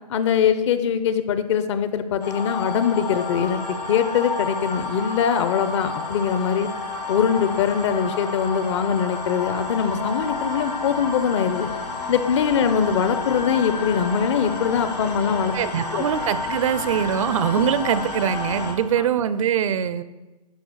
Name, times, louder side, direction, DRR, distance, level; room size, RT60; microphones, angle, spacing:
voice 1, 0.1-6.7 7.1-11.7 12.1-15.5 15.9-16.0, left 7 dB, 45° left, 11 dB, 0.8 m, -22 dB
sound 1, 2.2-18.7, left 3 dB, 85° left, 2.9 m, -30 dB
voice 2, 15.5-20.0, right 8 dB, 55° right, 14 dB, 0.6 m, -23 dB
11.5 x 5.0 x 6.3 m, 1.1 s
hypercardioid pair, 140°, 21 cm